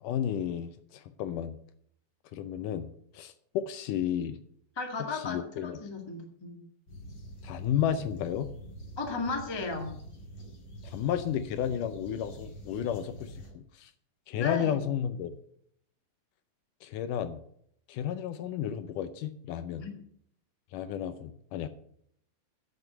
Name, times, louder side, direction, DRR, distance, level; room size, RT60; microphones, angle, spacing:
voice 1, 0.0-1.6 2.3-2.9 3.1-4.4 5.1-5.8 7.4-8.5 10.8-13.9 14.3-15.4 16.8-17.4 17.9-19.9 20.7-21.7, left 9 dB, 75° left, 11 dB, 2.1 m, -32 dB
voice 2, 4.7-6.6 9.0-10.0 14.3-14.8 19.8-19.9, left 4 dB, 20° left, 2 dB, 0.6 m, -35 dB
sound 1, 6.9-13.5, right 1 dB, 40° left, 2.6 m, -46 dB
9.7 x 7.5 x 8.1 m, 0.67 s
omnidirectional pair, 4.1 m